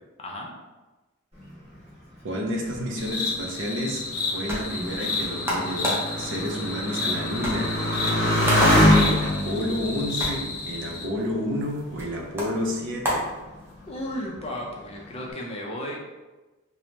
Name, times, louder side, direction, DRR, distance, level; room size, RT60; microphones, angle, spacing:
voice 1, 0.2-0.5 8.0-8.9 13.9-16.0, left 1 dB, 30° left, -1 dB, 0.4 m, -34 dB
voice 2, 2.2-4.0 4.3-7.8 9.0-13.3, equal, 60° right, 1 dB, 0.5 m, -30 dB
Motorcycle, 2.7-11.7 12.5-13.1, left 1 dB, 30° right, 1.1 m, -25 dB
sound 1, 3.0-11.1, left 3 dB, 75° left, 0.6 m, -32 dB
sound 2, 4.1-14.0, equal, 10° right, 0.6 m, -34 dB
2.8 x 2.0 x 3.1 m, 1.2 s
head